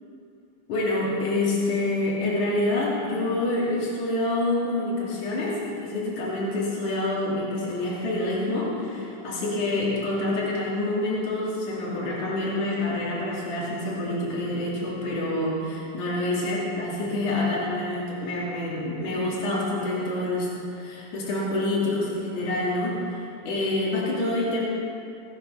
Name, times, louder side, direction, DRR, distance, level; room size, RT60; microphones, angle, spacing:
voice 1, 0.7-23.2 23.5-24.6, left 2 dB, 60° left, -6 dB, 3.9 m, -27 dB
17.0 x 9.4 x 5.5 m, 2.7 s
omnidirectional pair, 4.1 m